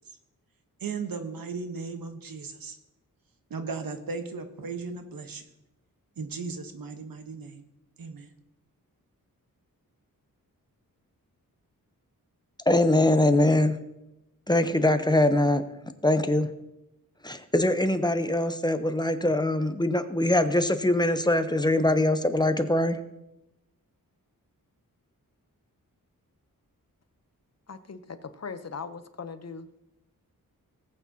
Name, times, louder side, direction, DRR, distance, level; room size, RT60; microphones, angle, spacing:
voice 1, 0.8-2.8 3.5-5.4 6.2-7.6 8.0-8.3, right 4 dB, 80° right, 7 dB, 1.2 m, -36 dB
voice 2, 12.7-13.8 14.5-15.6 16.0-16.5 17.2-23.0, left 1 dB, 10° left, 9 dB, 0.7 m, -23 dB
voice 3, 27.7-29.7, left 5 dB, 50° left, 10 dB, 0.8 m, -39 dB
18.5 x 8.5 x 2.8 m, 0.90 s
wide cardioid pair, 90°, 34 cm